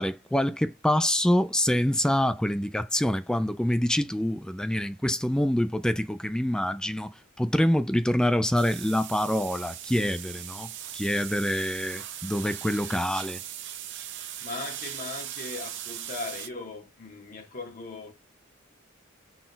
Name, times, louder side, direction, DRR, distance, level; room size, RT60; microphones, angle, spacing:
voice 1, 0.0-13.4, left 1 dB, 5° left, 0.3 m, -26 dB
sound 1, 8.6-16.5, right 11 dB, 60° right, 0.6 m, -39 dB
voice 2, 14.4-18.1, left 3 dB, 40° left, 0.9 m, -38 dB
4.0 x 2.3 x 3.8 m
head